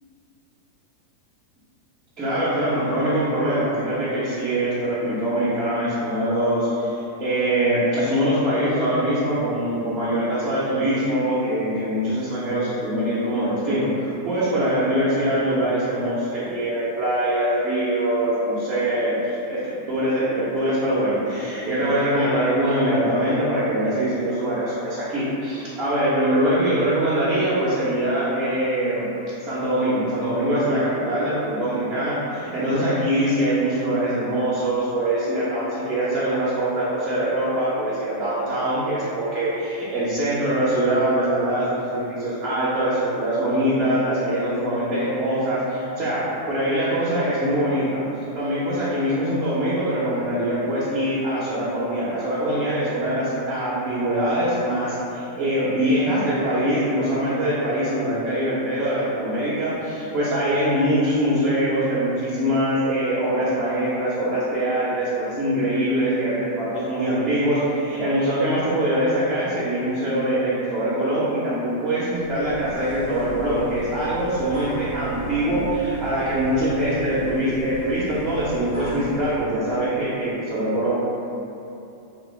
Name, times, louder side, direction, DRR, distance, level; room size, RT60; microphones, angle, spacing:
voice 1, 2.2-29.1 29.4-48.0 48.3-81.0, right 1 dB, 35° right, -10 dB, 0.7 m, -23 dB
sound 1, 72.1-79.4, right 2 dB, 75° left, 0.8 m, -37 dB
2.4 x 2.0 x 3.2 m, 2.8 s
hypercardioid pair, 95°, 0 cm